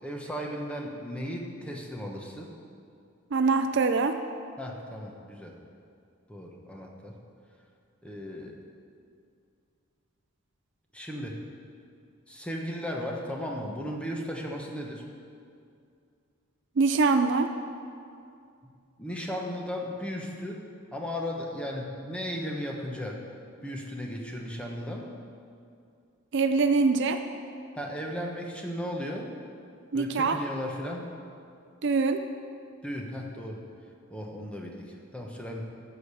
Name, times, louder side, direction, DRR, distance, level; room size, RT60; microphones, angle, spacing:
voice 1, 0.0-2.5 4.6-5.6 6.3-7.2 8.0-8.5 10.9-11.4 12.3-15.1 19.0-20.6 20.9-23.2 23.6-25.1 27.7-29.3 29.9-31.1 32.8-33.6 34.1-35.6, equal, 5° left, 0 dB, 1.1 m, -36 dB
voice 2, 3.3-4.2 16.8-17.5 26.3-27.2 29.9-30.4 31.8-32.2, right 4 dB, 55° right, 8 dB, 0.5 m, -23 dB
13.5 x 5.0 x 6.9 m, 2.4 s
head